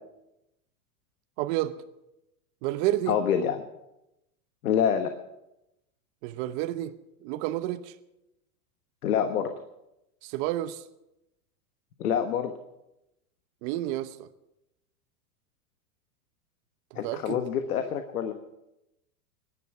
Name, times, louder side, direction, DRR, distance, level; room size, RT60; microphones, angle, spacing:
voice 1, 1.4-1.7 2.6-3.1 6.2-6.9 7.2-7.9 10.2-10.8 13.6-14.3 16.9-17.4, right 14 dB, 50° right, 10 dB, 0.9 m, -30 dB
voice 2, 3.1-3.6 4.6-5.1 9.0-9.5 12.0-12.5 16.9-18.3, left 8 dB, 90° left, 7 dB, 1.3 m, -26 dB
17.0 x 11.0 x 6.0 m, 0.89 s
supercardioid pair, 125°, 44 cm